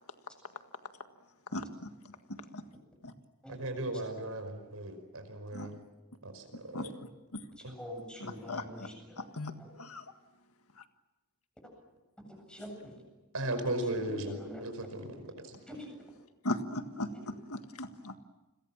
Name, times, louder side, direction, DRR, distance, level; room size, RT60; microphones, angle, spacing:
voice 1, 1.5-1.9 2.5-2.6 3.0-3.1 5.5-5.7 6.7-6.9 7.3-7.4 8.2-8.9 9.2-9.5 9.8-10.0 10.8-10.9 16.4-18.2, left 1 dB, 80° left, 7 dB, 1.8 m, -38 dB
voice 2, 3.5-5.8 6.2-6.9 7.6-7.7 13.3-14.3 14.6-15.0, right 1 dB, 75° right, 7 dB, 5.2 m, -36 dB
voice 3, 7.5-9.3 9.6-9.7 12.3-13.0 13.8-14.6 15.0-15.1 15.7-15.9 17.1-17.4, left 1 dB, 5° left, 3 dB, 7.9 m, -46 dB
30.0 x 22.0 x 7.4 m, 1.1 s
head